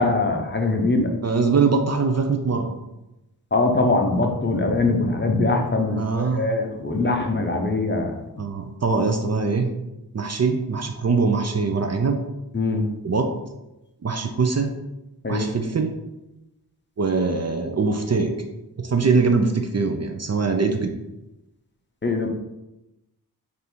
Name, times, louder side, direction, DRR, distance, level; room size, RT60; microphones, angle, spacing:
voice 1, 0.0-1.1 3.5-8.2 12.5-12.9 15.2-15.4 22.0-22.3, left 2 dB, 30° left, 2 dB, 0.6 m, -22 dB
voice 2, 1.2-2.8 5.9-6.6 8.4-9.7 10.1-12.2 13.0-13.3 14.0-14.7 15.3-15.9 17.0-18.3 18.8-20.9, right 4 dB, 40° right, 4 dB, 0.4 m, -22 dB
3.5 x 2.6 x 4.3 m, 0.95 s
wide cardioid pair, 65°, 40 cm